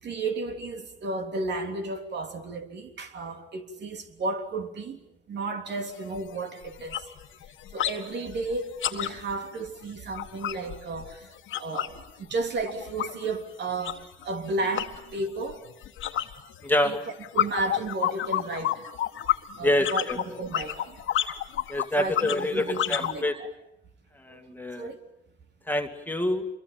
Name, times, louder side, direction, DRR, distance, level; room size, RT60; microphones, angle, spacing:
voice 1, 0.0-5.0 5.3-7.1 7.7-11.3 11.6-15.6 16.8-17.0 17.3-18.8 19.6-21.0 22.0-23.5 24.3-24.5 24.8-25.0, right 3 dB, 60° right, 5 dB, 3.4 m, -33 dB
sound 1, 5.7-5.8 6.1-6.3 6.6-8.0 8.3-12.0 12.3-23.2, left 12 dB, 80° left, 1.8 m, -31 dB
voice 2, 16.6-17.0 19.6-20.2 21.7-23.3 24.2-24.9 25.7-26.5, left 1 dB, 10° left, 5 dB, 2.1 m, -26 dB
26.5 x 23.0 x 8.9 m, 0.80 s
cardioid pair, 90°, 20 cm